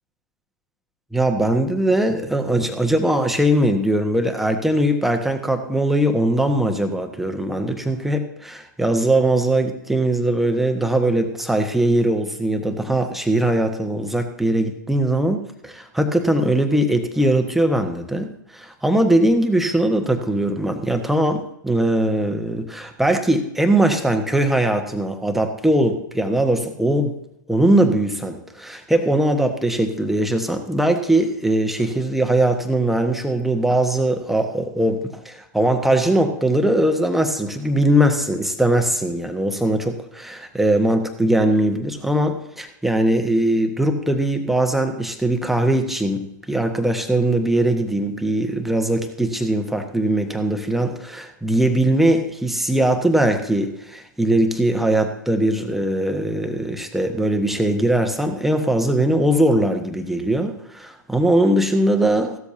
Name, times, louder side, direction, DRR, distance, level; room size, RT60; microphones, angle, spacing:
voice 1, 1.1-27.2 27.5-62.4, right 1 dB, ahead, 5 dB, 1.4 m, -20 dB
15.5 x 13.0 x 2.8 m, 0.78 s
figure-of-eight pair, 100°, 10 cm